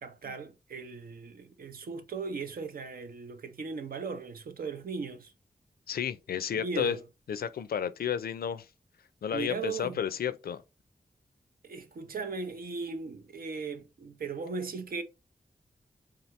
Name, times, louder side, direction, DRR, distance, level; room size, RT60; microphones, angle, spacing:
voice 1, 0.0-5.3 6.5-7.0 9.3-10.0 11.6-15.0, right 4 dB, 75° right, 0.7 m, -38 dB
voice 2, 5.9-7.0 7.3-8.7 9.2-10.6, left 8 dB, 85° left, 0.4 m, -32 dB
3.8 x 2.8 x 3.1 m
wide cardioid pair, 90°, 15 cm